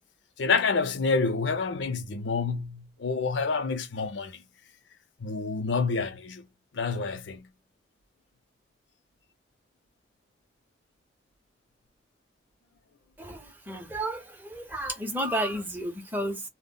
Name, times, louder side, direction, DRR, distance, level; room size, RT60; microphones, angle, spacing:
voice 1, 0.4-4.4 5.2-6.4 6.7-7.5, left 4 dB, 75° left, 0.5 m, -28 dB
voice 2, 13.2-16.4, right 1 dB, 10° right, 0.6 m, -32 dB
2.1 x 2.0 x 3.7 m
head